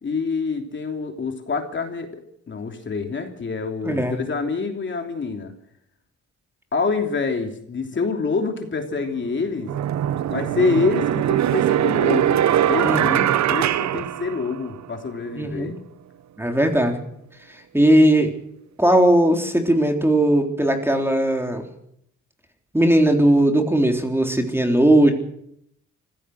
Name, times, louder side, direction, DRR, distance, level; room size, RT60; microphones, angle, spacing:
voice 1, 0.0-5.5 6.7-9.7 10.3-12.4 12.7-13.1 13.5-15.8, left 4 dB, 40° left, 4 dB, 3.2 m, -26 dB
voice 2, 3.8-4.2 12.8-13.3 15.4-15.7 16.4-17.0 17.7-18.3 18.8-21.6 22.7-25.1, right 1 dB, 10° right, 4 dB, 3.7 m, -18 dB
sound 1, 8.9-9.0 9.7-14.9, right 11 dB, 65° right, 1.0 m, -21 dB
25.0 x 16.0 x 6.5 m, 0.73 s
cardioid pair, 90°, 30 cm